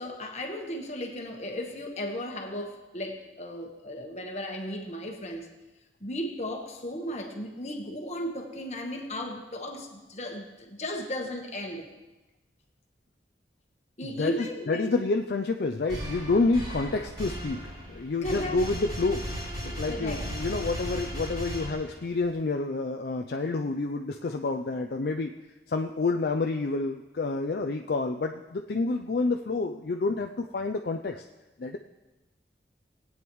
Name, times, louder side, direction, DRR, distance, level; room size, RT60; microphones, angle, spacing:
voice 1, 0.0-5.5 6.0-11.9 14.0-15.0 18.2-18.6 19.9-20.2, equal, 40° left, 2 dB, 1.3 m, -35 dB
voice 2, 14.0-19.3 19.6-25.3 25.7-31.2 31.6-31.8, left 3 dB, 60° left, 4 dB, 0.4 m, -29 dB
sound 1, 15.9-22.2, equal, 30° right, 3.1 m, -36 dB
19.0 x 8.8 x 3.1 m, 1.1 s
head